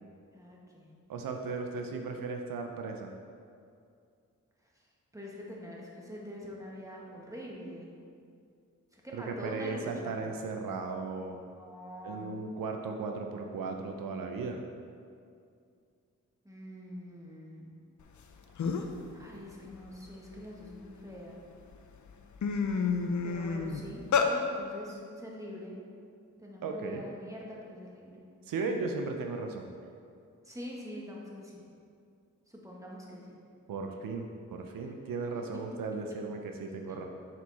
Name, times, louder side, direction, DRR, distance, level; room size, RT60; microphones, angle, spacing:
voice 1, 0.3-1.0 5.1-8.0 8.9-10.3 11.5-12.2 16.4-17.7 19.1-21.4 23.2-25.8 26.4-28.2 30.4-31.6 32.5-33.4 34.8-34.9 36.9-37.0, equal, 10° right, -3 dB, 1.5 m, -44 dB
voice 2, 1.1-3.1 9.1-11.4 12.0-14.6 26.6-27.0 28.5-29.7 33.7-37.1, right 4 dB, 85° right, 3 dB, 0.6 m, -36 dB
sound 1, 18.2-18.3 18.6-19.0 19.5-21.0 21.6-21.8 22.1-24.3, left 5 dB, 60° left, 0.6 m, -30 dB
6.6 x 4.5 x 4.1 m, 2.3 s
cardioid pair, 55°, 33 cm